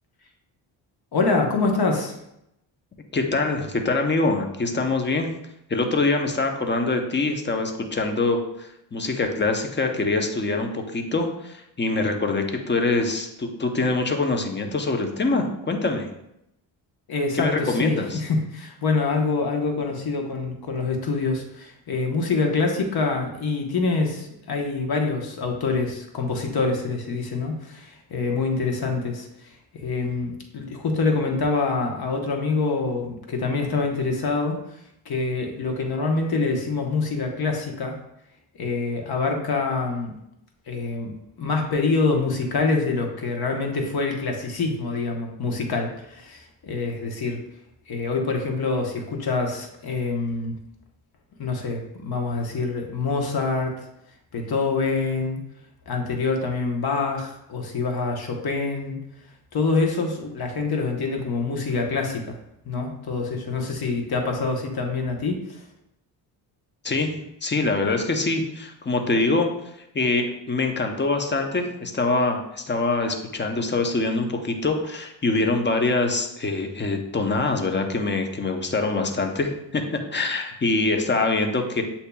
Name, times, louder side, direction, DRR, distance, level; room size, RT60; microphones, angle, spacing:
voice 1, 1.1-2.2 17.1-34.6 35.0-38.0 38.6-40.1 40.7-41.1 41.4-47.4 47.9-50.5 51.4-53.7 54.3-55.4 55.9-59.0 59.5-62.3 62.7-65.6, left 3 dB, 50° left, 2 dB, 1.1 m, -25 dB
voice 2, 3.1-5.3 5.7-16.1 17.3-18.2 66.8-67.1 67.4-69.5 69.9-79.8 80.1-81.8, left 3 dB, 25° left, 4 dB, 0.7 m, -24 dB
8.0 x 2.8 x 2.3 m, 0.82 s
cardioid pair, 70°, 46 cm